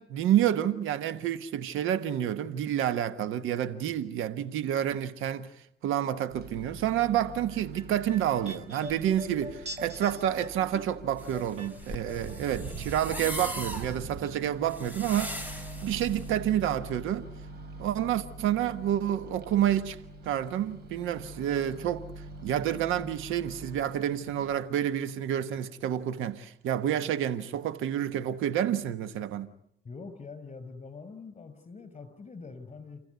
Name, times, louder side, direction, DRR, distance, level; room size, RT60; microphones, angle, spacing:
voice 1, 0.0-5.5 5.8-15.4 15.8-17.3 17.8-20.0 20.2-22.1 22.4-29.5, right 10 dB, 90° right, 1.3 m, -29 dB
Microwave oven, 6.3-24.6, right 3 dB, 55° right, 4.6 m, -44 dB
sound 1, 7.5-12.7 13.0-14.0 14.2-14.3, equal, 35° right, 2.2 m, -44 dB
sound 2, 11.2-16.3, equal, 10° right, 5.3 m, -40 dB
voice 2, 29.8-33.0, left 4 dB, 35° left, 5.8 m, -44 dB
30.0 x 15.0 x 9.6 m
cardioid pair, 90°, 20 cm